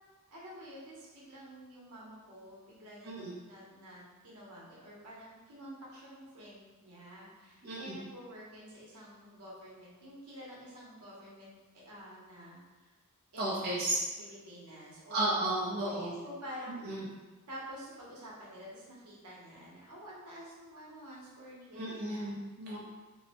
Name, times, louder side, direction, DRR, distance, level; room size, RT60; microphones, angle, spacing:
voice 1, 0.3-12.9 13.3-13.5 14.2-16.7 17.5-22.3 22.6-22.7, equal, 90° right, -5 dB, 0.8 m, -49 dB
voice 2, 3.0-3.4 7.6-8.0 13.4-14.0 15.1-16.1 16.8-17.0 21.7-22.9, right 1 dB, 45° right, -6 dB, 0.5 m, -33 dB
2.6 x 2.1 x 2.8 m, 1.2 s
head